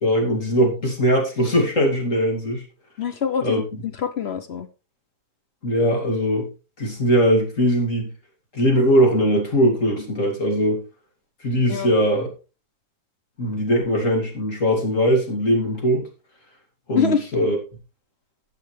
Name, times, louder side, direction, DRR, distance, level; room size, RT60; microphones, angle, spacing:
voice 1, 0.0-2.6 3.4-3.6 5.6-6.5 6.8-8.1 8.5-10.8 11.4-12.3 13.4-16.1 16.9-17.6, equal, 40° left, 2.9 m, -20 dB
voice 2, 3.0-4.7 11.5-11.9 16.9-17.3, left 6 dB, 65° left, 0.6 m, -25 dB
17.0 x 5.7 x 3.3 m
omnidirectional pair, 2.1 m